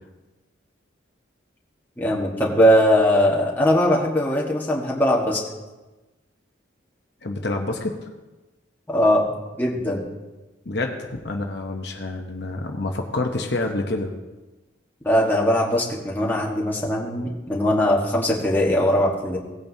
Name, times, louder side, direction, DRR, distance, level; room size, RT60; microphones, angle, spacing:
voice 1, 2.0-5.4 8.9-9.3 9.6-10.1 15.0-19.4, equal, 10° left, -3 dB, 1.4 m, -20 dB
voice 2, 7.2-8.0 10.7-14.1, left 2 dB, 55° left, 3 dB, 0.9 m, -27 dB
17.5 x 8.9 x 2.8 m, 1.2 s
head